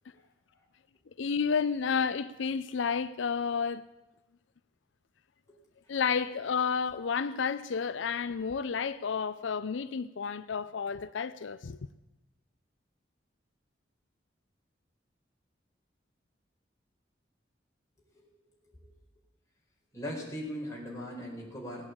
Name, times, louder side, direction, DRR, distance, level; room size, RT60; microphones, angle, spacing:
voice 1, 1.2-3.8 5.9-11.8, left 6 dB, 85° left, 0.5 m, -31 dB
voice 2, 19.9-21.8, equal, 15° left, 4.4 m, -40 dB
17.5 x 8.8 x 8.4 m
head